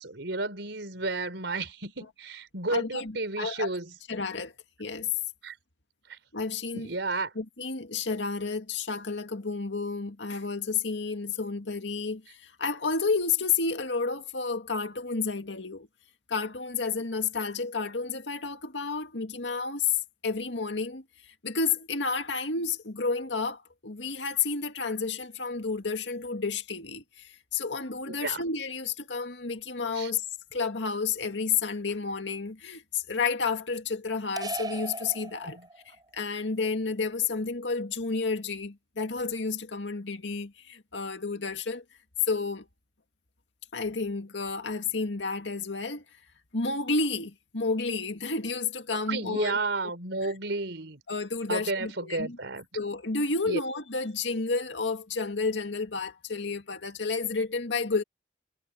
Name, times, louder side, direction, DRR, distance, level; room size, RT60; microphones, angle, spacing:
voice 1, 0.0-3.9 5.4-5.5 6.1-6.2 6.7-7.3 28.1-28.4 29.9-30.1 35.4-35.7 49.1-51.0 51.5-52.7 53.5-53.6, right 3 dB, 80° right, 4.2 m, -32 dB
voice 2, 2.7-3.7 4.1-4.5 4.8-5.1 6.3-6.9 7.4-15.9 16.3-20.0 20.2-21.0 21.4-30.3 30.5-35.6 36.1-41.8 42.3-42.7 43.7-46.0 46.5-49.6 50.2-50.3 51.1-52.4 52.7-58.0, left 4 dB, 90° left, 2.1 m, -31 dB
sound 1, 34.4-36.0, right 2 dB, 25° right, 5.6 m, -37 dB
head